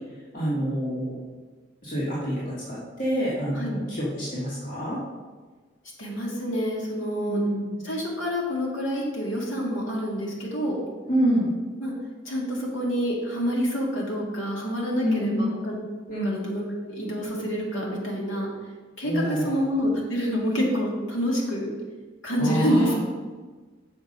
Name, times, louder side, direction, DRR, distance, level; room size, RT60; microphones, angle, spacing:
voice 1, 0.3-1.2 1.8-5.0 7.3-7.8 11.1-11.5 15.0-15.5 16.1-16.3 19.0-19.6 22.4-22.9, equal, 45° left, -8 dB, 1.6 m, -27 dB
voice 2, 6.0-7.4 7.8-10.8 11.8-11.9 12.3-15.8 16.1-18.5 19.0-21.7 22.2-22.9, equal, 75° left, -3 dB, 2.1 m, -27 dB
6.8 x 5.3 x 5.3 m, 1.3 s
head